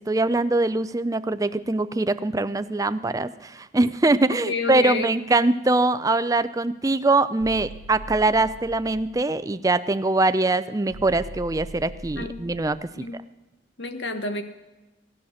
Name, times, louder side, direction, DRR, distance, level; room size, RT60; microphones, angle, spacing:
voice 1, 0.0-12.8, right 2 dB, 20° right, 14 dB, 0.4 m, -23 dB
voice 2, 4.3-5.1 12.2-12.4 13.0-13.2 13.8-14.4, left 3 dB, 65° left, 8 dB, 1.3 m, -29 dB
sound 1, 7.4-9.2 10.9-12.8, right 1 dB, 85° right, 0.7 m, -41 dB
17.0 x 11.0 x 6.4 m, 1.1 s
head